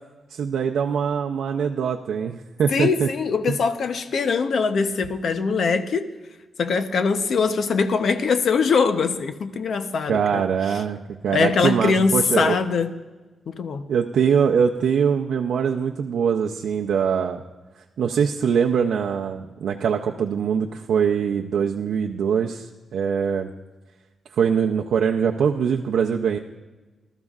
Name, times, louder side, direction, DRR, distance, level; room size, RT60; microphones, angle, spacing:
voice 1, 0.3-3.1 3.5-3.6 10.1-11.0 11.2-12.6 13.9-17.4 18.0-23.5 24.3-26.4, right 7 dB, 80° right, 1 dB, 0.5 m, -22 dB
voice 2, 2.7-6.1 6.6-10.4 11.3-12.9 13.5-13.8, left 5 dB, 60° left, 9 dB, 0.7 m, -22 dB
20.0 x 13.0 x 2.4 m, 1.2 s
wide cardioid pair, 155°, 0 cm